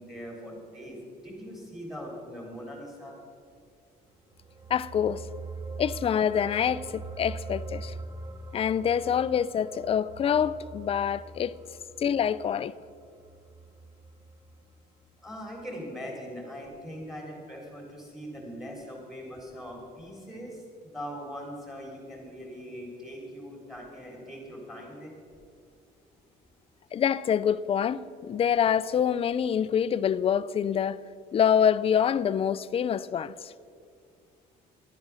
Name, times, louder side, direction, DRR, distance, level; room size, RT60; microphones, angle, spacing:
voice 1, 0.0-3.1 15.2-25.1, equal, ahead, 3.7 m, -41 dB
sound 1, 4.2-14.9 15.2-15.4, right 3 dB, 20° right, 0.9 m, -43 dB
voice 2, 4.7-5.2 5.8-7.9 8.5-11.5 12.0-12.7 26.9-31.0 31.3-33.5, left 8 dB, 35° left, 0.4 m, -26 dB
11.5 x 9.4 x 6.2 m
cardioid pair, 110°, 17 cm